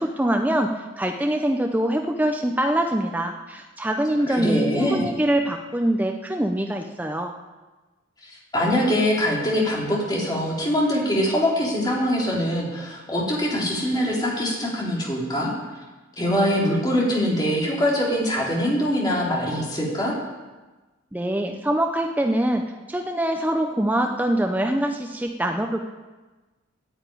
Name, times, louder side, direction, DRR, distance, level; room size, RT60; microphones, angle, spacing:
voice 1, 0.0-7.3 21.1-25.9, right 1 dB, 10° right, 4 dB, 0.6 m, -24 dB
voice 2, 4.3-5.1 8.5-15.5 16.2-20.1, equal, 20° left, -4 dB, 3.2 m, -23 dB
10.0 x 8.9 x 9.1 m, 1.2 s
head